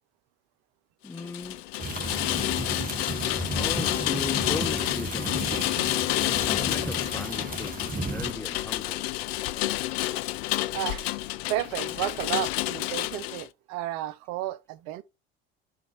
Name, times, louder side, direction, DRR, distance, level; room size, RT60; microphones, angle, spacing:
voice 1, 1.0-1.7 3.5-5.8 6.2-9.2, left 3 dB, 10° left, 0.3 m, -38 dB
Rain, 1.1-13.5, left 17 dB, 70° left, 0.5 m, -29 dB
sound 1, 1.8-8.3, right 2 dB, 25° right, 1.7 m, -34 dB
voice 2, 10.7-11.1 11.5-15.0, right 14 dB, 60° right, 0.7 m, -32 dB
11.5 x 4.0 x 3.1 m
hypercardioid pair, 65°, 31 cm